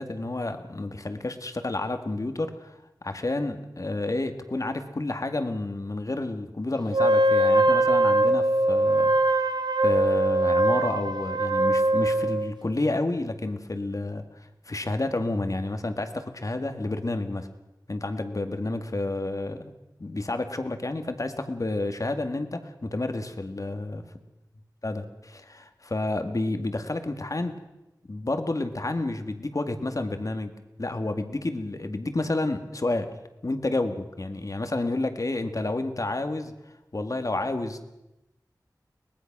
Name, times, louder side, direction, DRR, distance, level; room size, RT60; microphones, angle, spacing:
voice 1, 0.0-9.1 9.8-17.5 17.9-19.7 20.0-24.0 24.8-27.5 28.0-30.5 30.8-33.1 33.4-36.5 36.9-37.9, left 2 dB, 50° left, 8 dB, 2.0 m, -30 dB
Wind instrument woodwind instrument, 6.9-12.5, right 1 dB, 85° right, 1.3 m, -22 dB
23.0 x 19.0 x 6.1 m, 0.95 s
wide cardioid pair, 50°, 7 cm